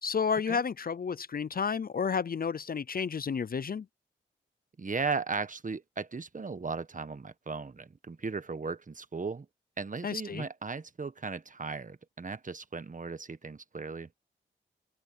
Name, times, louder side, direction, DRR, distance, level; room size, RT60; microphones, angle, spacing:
voice 1, 0.0-3.9 10.0-10.5, left 6 dB, 45° left, 0.6 m, -31 dB
voice 2, 4.8-9.5 9.8-14.1, right 4 dB, 40° right, 1.4 m, -36 dB
open air
cardioid pair, 50°, 20 cm